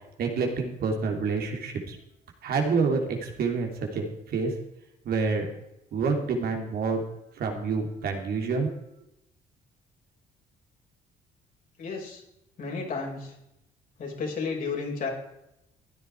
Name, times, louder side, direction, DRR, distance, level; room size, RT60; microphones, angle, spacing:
voice 1, 0.2-2.0 2.4-4.5 5.0-5.4 5.9-7.0 7.4-8.7, right 4 dB, 65° right, 3 dB, 3.2 m, -27 dB
voice 2, 11.8-12.2 12.6-13.3 14.0-15.1, left 4 dB, 55° left, -1 dB, 5.5 m, -32 dB
15.5 x 9.9 x 4.7 m, 0.82 s
cardioid pair, 80°, 17 cm